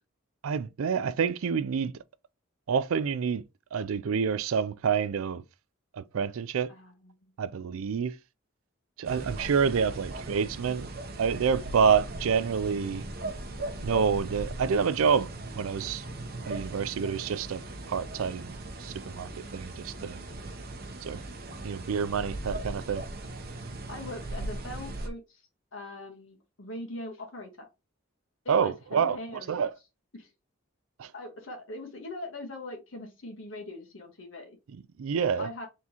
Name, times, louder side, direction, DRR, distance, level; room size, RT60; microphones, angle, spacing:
voice 1, 0.4-1.9 2.7-3.4 3.7-5.4 5.9-6.7 7.4-8.1 9.0-10.9 11.2-13.0 13.8-15.3 15.5-16.0 16.5-17.6 17.9-20.2 21.1-21.2 21.6-23.0 28.5-29.2 29.5-29.7 31.0-31.1 34.7-35.5, right 6 dB, 80° right, 0.4 m, -28 dB
voice 2, 6.7-7.3 23.9-25.4 25.7-27.7 28.4-29.6 30.1-30.3 31.1-34.6 35.4-35.7, left 2 dB, 65° left, 1.5 m, -41 dB
sound 1, 9.0-25.1, right 2 dB, 45° right, 0.8 m, -39 dB
4.1 x 3.6 x 2.9 m
head